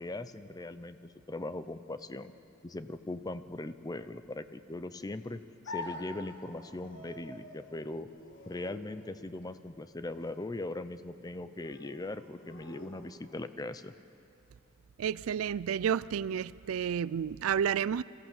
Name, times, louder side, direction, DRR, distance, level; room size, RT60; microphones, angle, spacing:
voice 1, 0.0-2.3 2.6-8.1 8.5-13.9, left 2 dB, 20° left, 0.6 m, -40 dB
sound 1, 5.6-13.6, left 2 dB, 60° left, 1.9 m, -48 dB
voice 2, 15.0-18.0, right 8 dB, 80° right, 0.4 m, -31 dB
26.0 x 15.5 x 7.1 m
head